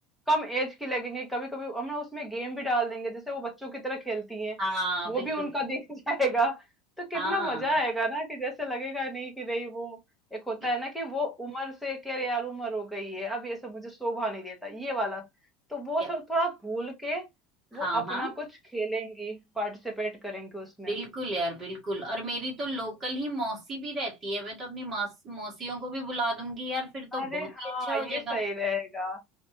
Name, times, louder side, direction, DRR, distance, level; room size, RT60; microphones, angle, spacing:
voice 1, 0.3-4.6 5.1-6.6 7.0-10.0 10.3-15.3 15.7-17.3 17.7-18.5 18.7-21.0 27.1-29.2, right 1 dB, ahead, 1.1 m, -31 dB
voice 2, 4.6-5.3 7.1-7.7 16.0-16.1 17.7-18.3 20.9-28.4, right 1 dB, 15° right, 2.0 m, -33 dB
4.1 x 3.2 x 2.8 m
cardioid pair, 175°, 0 cm